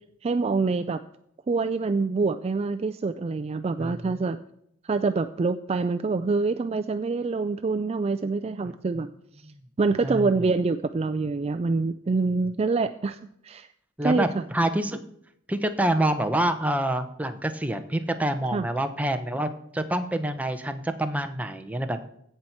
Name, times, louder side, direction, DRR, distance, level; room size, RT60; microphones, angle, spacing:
voice 1, 0.2-1.0 1.5-4.4 4.8-9.1 9.8-13.2 13.4-13.7 14.0-14.5 18.5-18.7, right 4 dB, 30° right, 10 dB, 0.3 m, -26 dB
voice 2, 10.0-10.4 14.0-15.0 15.5-22.0, right 1 dB, 5° right, 7 dB, 0.7 m, -27 dB
16.0 x 5.7 x 4.5 m, 0.72 s
head